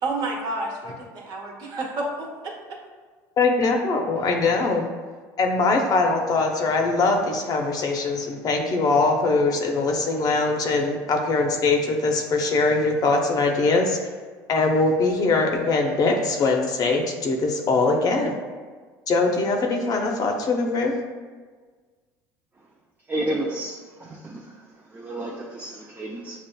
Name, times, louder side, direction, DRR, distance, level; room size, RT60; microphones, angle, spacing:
voice 1, 0.0-2.5, right 2 dB, 50° right, 1.1 m, -30 dB
voice 2, 3.4-4.9 5.4-14.0 14.5-18.3 19.1-20.9, left 3 dB, 45° left, 0.7 m, -22 dB
voice 3, 23.1-24.5 24.9-26.4, right 1 dB, 20° right, 0.4 m, -31 dB
6.9 x 2.4 x 2.2 m
supercardioid pair, 100°, 9 cm